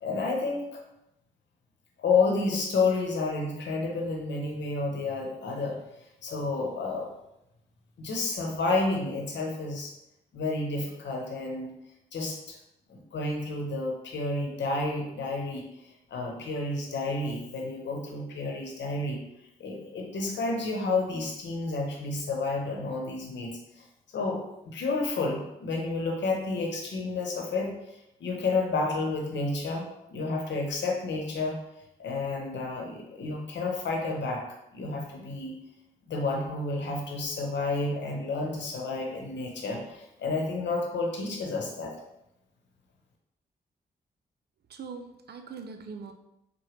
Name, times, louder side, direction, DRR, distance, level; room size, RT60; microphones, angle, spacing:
voice 1, 0.0-0.8 2.0-5.8 6.2-7.1 8.0-9.9 10.3-11.7 12.1-12.6 12.9-19.2 19.6-23.6 24.1-27.7 28.2-31.6 32.0-34.4 34.7-35.6 36.1-41.9, left 3 dB, 70° left, 1 dB, 0.9 m, -30 dB
voice 2, 44.7-46.1, right 5 dB, 55° right, 6 dB, 0.5 m, -41 dB
4.7 x 2.2 x 3.2 m, 0.86 s
hypercardioid pair, 40°, 19 cm